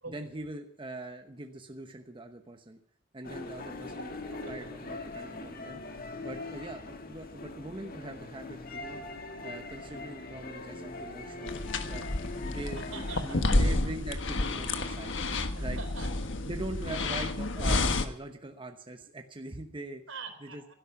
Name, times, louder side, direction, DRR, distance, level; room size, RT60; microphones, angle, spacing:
voice 1, 0.1-2.8 3.1-4.1 4.4-5.8 6.2-9.0 9.4-12.1 12.5-12.8 13.2-15.8 16.4-20.0 20.4-20.7, right 2 dB, 25° right, 5 dB, 1.0 m, -42 dB
sound 1, 3.2-13.2, left 2 dB, 45° left, 1.9 m, -41 dB
sound 2, 11.5-18.1, left 2 dB, 65° left, 1.4 m, -30 dB
voice 2, 12.7-13.8 15.5-16.3 20.1-20.7, right 3 dB, 75° right, 6 dB, 3.9 m, -44 dB
16.5 x 12.5 x 5.9 m, 0.67 s
head